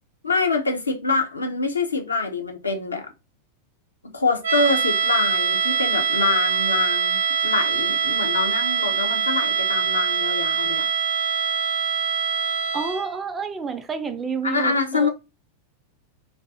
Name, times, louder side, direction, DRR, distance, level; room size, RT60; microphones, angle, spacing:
voice 1, 0.2-3.1 4.0-10.9 14.4-15.1, left 3 dB, 75° left, 0.5 m, -25 dB
sound 1, 4.4-13.1, right 7 dB, 70° right, 0.6 m, -23 dB
voice 2, 12.7-15.1, right 5 dB, 20° right, 0.3 m, -29 dB
2.5 x 2.3 x 2.3 m
figure-of-eight pair, 90°, 0 cm